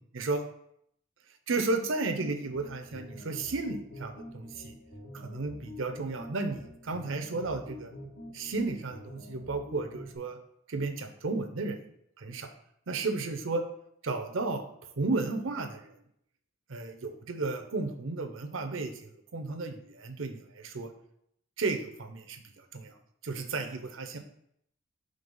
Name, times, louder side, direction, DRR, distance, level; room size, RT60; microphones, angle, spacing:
voice 1, 1.5-4.8 5.1-7.9 8.3-10.4 10.7-11.8 12.2-12.5 12.9-13.7 14.0-14.6 15.0-15.9 16.7-20.9 21.6-23.0 23.2-24.2, right 3 dB, 70° right, 6 dB, 0.7 m, -33 dB
sound 1, 2.2-10.2, left 1 dB, 85° left, 2.0 m, -47 dB
5.3 x 3.3 x 5.4 m, 0.72 s
head